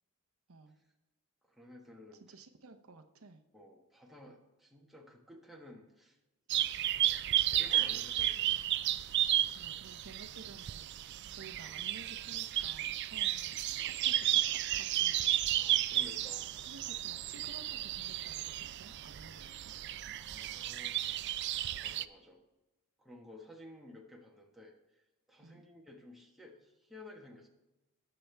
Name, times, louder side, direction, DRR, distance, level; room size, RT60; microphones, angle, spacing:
voice 1, 1.5-2.2 3.5-6.2 7.5-8.6 13.8-13.9 15.5-16.5 20.1-21.0 21.5-22.4 23.0-27.5, left 1 dB, ahead, -1 dB, 1.3 m, -54 dB
voice 2, 2.2-3.4 9.5-13.6 13.8-15.3 16.5-20.2 25.4-25.7, right 3 dB, 70° right, 7 dB, 0.7 m, -54 dB
sound 1, 6.5-22.0, right 12 dB, 50° right, 0.3 m, -33 dB
19.5 x 6.8 x 3.4 m, 1.0 s
head